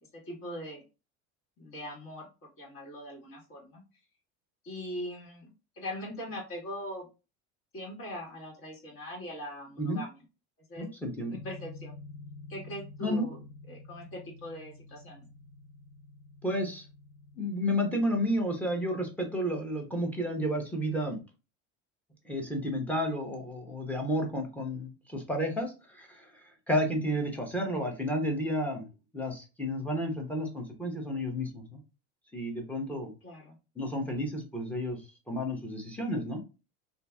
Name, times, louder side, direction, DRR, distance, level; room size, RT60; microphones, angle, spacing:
voice 1, 0.3-0.8 1.6-2.3 2.6-3.8 4.6-5.5 5.8-7.1 7.7-10.2 10.7-10.9 11.3-11.9 12.5-13.4 13.7-15.2 33.2-33.6, equal, 40° left, -1 dB, 1.8 m, -41 dB
voice 2, 10.8-11.4 13.0-13.3 16.4-16.8 17.4-21.2 22.2-26.3 26.7-28.9 29.1-31.8 32.3-33.1 33.8-35.0 35.3-36.4, equal, 5° left, 2 dB, 0.9 m, -31 dB
sound 1, 11.3-21.1, left 3 dB, 85° left, 1.0 m, -50 dB
2.8 x 2.7 x 3.5 m, 0.30 s
supercardioid pair, 125°, 35 cm